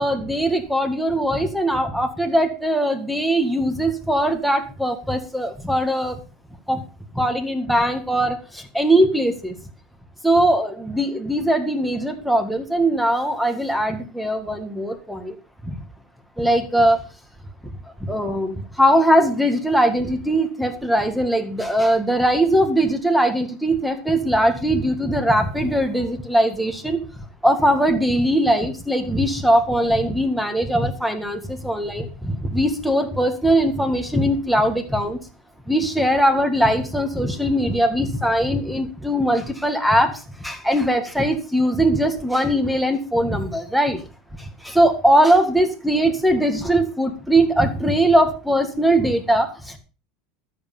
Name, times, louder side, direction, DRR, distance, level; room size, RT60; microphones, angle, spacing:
voice 1, 0.0-6.2 6.7-6.8 7.1-9.5 10.2-15.3 15.6-15.7 16.4-17.0 18.0-35.2 35.7-44.0 44.6-49.8, right 1 dB, ahead, 6 dB, 1.8 m, -20 dB
13.0 x 7.4 x 5.4 m, 0.33 s
supercardioid pair, 165°, 0 cm